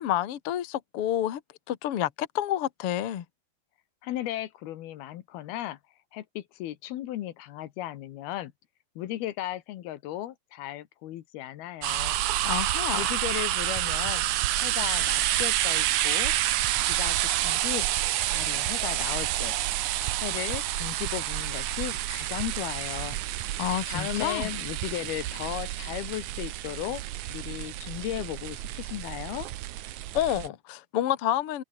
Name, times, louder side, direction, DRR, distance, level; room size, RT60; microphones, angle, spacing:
voice 1, 0.0-1.4 1.7-3.3 12.4-13.0 23.6-24.5 30.1-31.6, left 12 dB, 55° left, 1.8 m, -29 dB
voice 2, 4.0-5.8 6.1-8.5 9.0-12.2 12.9-14.3 14.6-16.3 16.9-17.9 18.2-19.6 20.2-23.2 23.9-27.0 27.3-29.5, left 13 dB, 85° left, 3.3 m, -36 dB
sound 1, 11.8-30.5, right 14 dB, 70° right, 2.0 m, -29 dB
sound 2, 12.0-22.0, right 4 dB, 45° right, 5.8 m, -45 dB
omnidirectional pair, 4.3 m